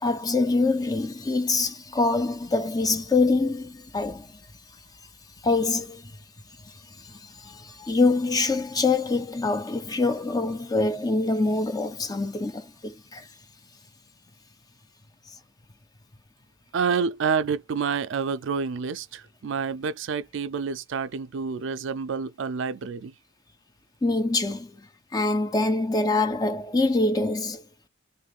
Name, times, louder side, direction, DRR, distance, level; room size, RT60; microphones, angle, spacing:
voice 1, 0.0-4.3 5.4-6.1 6.6-13.3 24.0-24.8 25.1-27.6, left 3 dB, 15° left, 0.4 m, -25 dB
voice 2, 16.7-23.1, right 5 dB, 60° right, 0.4 m, -28 dB
3.2 x 2.6 x 2.4 m
head